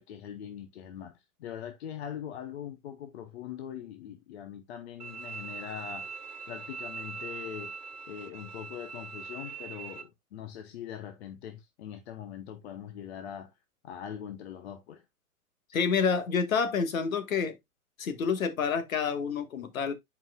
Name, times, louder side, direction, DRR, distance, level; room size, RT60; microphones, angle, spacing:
voice 1, 0.0-6.1 6.5-7.7 8.1-13.5 13.8-15.1, left 9 dB, 45° left, 1.0 m, -42 dB
Bowed string instrument, 5.0-10.0, right 5 dB, 85° right, 1.4 m, -41 dB
voice 2, 15.7-17.6 18.0-19.9, left 6 dB, 65° left, 1.6 m, -28 dB
10.5 x 4.8 x 2.3 m
figure-of-eight pair, 115°, 45 cm